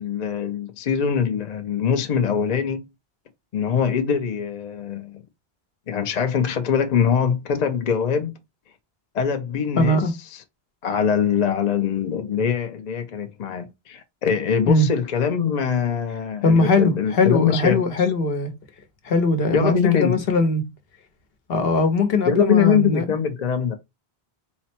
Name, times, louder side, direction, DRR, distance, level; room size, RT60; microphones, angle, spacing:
voice 1, 0.0-2.8 3.5-5.2 5.9-8.4 9.1-10.0 10.8-17.8 19.5-20.2 22.2-23.7, left 7 dB, 50° left, 0.6 m, -23 dB
voice 2, 9.8-10.1 14.7-14.9 16.4-18.5 19.0-20.6 21.5-23.0, left 2 dB, 70° left, 1.0 m, -20 dB
4.0 x 2.1 x 4.2 m
omnidirectional pair, 1.1 m